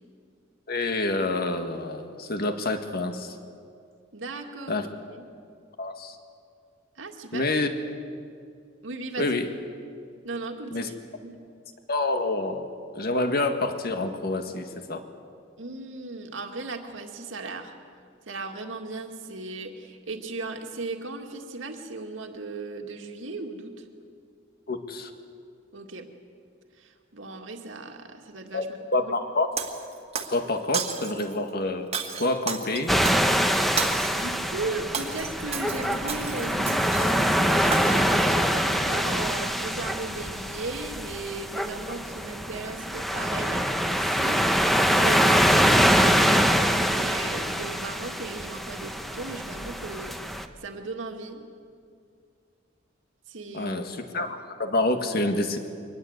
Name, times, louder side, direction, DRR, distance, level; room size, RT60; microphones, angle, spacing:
voice 1, 0.7-3.4 4.7-4.9 5.8-6.2 7.3-7.7 9.2-9.5 10.7-10.9 11.9-15.0 24.7-25.1 28.5-28.6 28.9-29.5 30.3-31.9 32.2-33.0 53.5-55.6, left 2 dB, 55° left, 6 dB, 1.8 m, -27 dB
voice 2, 4.1-4.8 5.1-5.2 7.0-7.5 8.8-9.4 10.2-10.9 11.2-11.4 15.6-17.7 18.3-23.9 25.7-26.1 26.8-28.7 29.0-29.1 34.1-50.3 50.6-51.4 53.3-53.8, right 3 dB, 85° right, 4 dB, 2.2 m, -36 dB
Shatter, 29.6-30.4 30.7-31.3 31.9-34.3 34.7-37.3 37.7-38.1, right 6 dB, 35° right, 1.7 m, -33 dB
sound 1, 32.9-50.4, equal, ahead, 1.0 m, -24 dB
23.5 x 20.0 x 8.1 m, 2.3 s
head